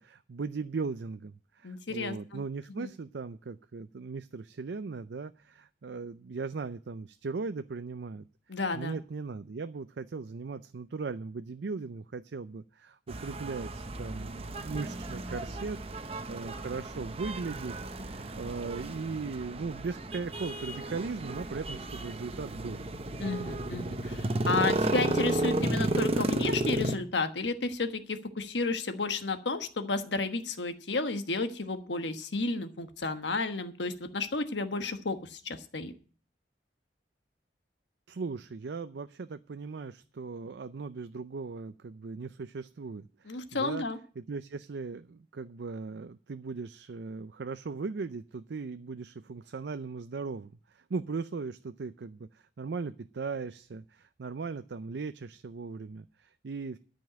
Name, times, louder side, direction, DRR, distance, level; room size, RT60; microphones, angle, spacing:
voice 1, 0.0-22.8 38.1-43.8 44.2-56.8, right 4 dB, 70° right, 11 dB, 0.5 m, -38 dB
voice 2, 1.6-2.4 2.8-2.9 8.5-9.0 23.2-35.9 43.2-44.0, left 3 dB, 80° left, 8 dB, 1.3 m, -32 dB
sound 1, 13.1-26.9, right 1 dB, 35° right, 0.8 m, -33 dB
13.0 x 5.4 x 9.0 m, 0.41 s
head